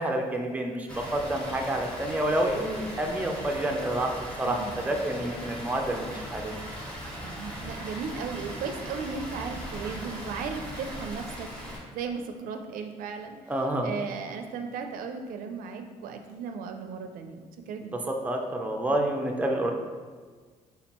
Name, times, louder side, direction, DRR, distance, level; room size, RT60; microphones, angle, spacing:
voice 1, 0.0-4.1 4.4-6.5 13.5-13.9 18.2-19.7, right 1 dB, 10° right, 2 dB, 0.5 m, -28 dB
Water, 0.9-11.8, equal, 10° left, 1.3 m, -39 dB
voice 2, 4.4-4.8 7.2-11.5 11.9-13.4 13.8-18.0, right 5 dB, 80° right, 6 dB, 0.4 m, -36 dB
4.2 x 3.8 x 2.9 m, 1.5 s
cardioid pair, 105°, 14 cm